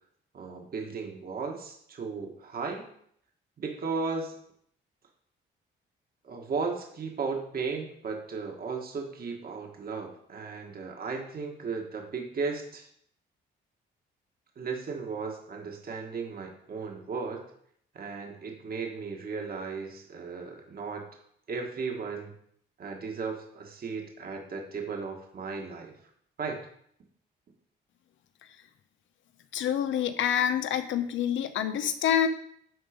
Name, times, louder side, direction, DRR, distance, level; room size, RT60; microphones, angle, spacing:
voice 1, 0.3-2.9 3.6-4.4 6.2-12.9 14.5-17.4 17.9-21.0 21.5-22.3 22.8-25.9 26.4-26.6, right 4 dB, 50° right, 2 dB, 1.6 m, -35 dB
voice 2, 29.5-32.3, left 9 dB, 75° left, 10 dB, 0.8 m, -27 dB
11.0 x 3.8 x 5.1 m, 0.67 s
cardioid pair, 90°, 20 cm